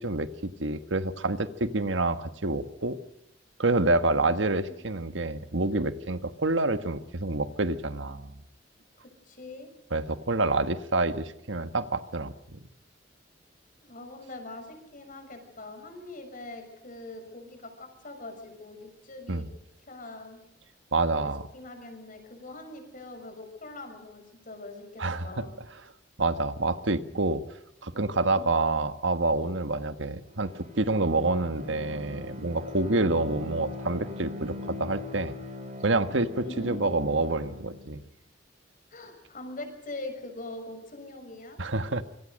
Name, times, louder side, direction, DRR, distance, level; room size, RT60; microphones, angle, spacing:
voice 1, 0.0-3.0 3.6-8.4 9.9-12.6 19.3-19.5 20.9-21.4 25.0-25.4 26.2-27.4 27.8-35.3 35.8-38.0 41.6-42.0, right 2 dB, 90° right, 10 dB, 1.5 m, -27 dB
voice 2, 4.0-4.8 9.2-9.7 13.8-19.5 19.9-20.4 21.2-25.5 28.2-28.5 32.8-33.1 36.4-36.8 38.9-41.6, left 2 dB, 45° left, 5 dB, 6.3 m, -43 dB
Bowed string instrument, 30.2-37.9, left 2 dB, 35° right, 5.2 m, -41 dB
26.0 x 24.5 x 6.5 m, 0.82 s
head